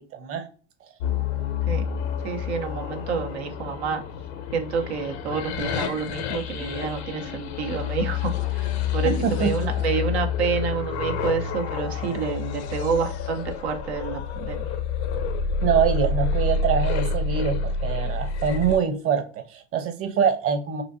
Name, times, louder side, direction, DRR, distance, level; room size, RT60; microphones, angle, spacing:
voice 1, 0.1-0.5 9.0-9.7 12.0-12.2 15.6-20.8, right 7 dB, 45° right, 7 dB, 1.1 m, -24 dB
sound 1, 1.0-18.8, left 5 dB, 85° left, 0.8 m, -28 dB
voice 2, 2.2-4.0 4.5-14.7, right 6 dB, 85° right, 5 dB, 1.0 m, -28 dB
6.0 x 2.6 x 2.7 m, 0.36 s
hypercardioid pair, 90°, 32 cm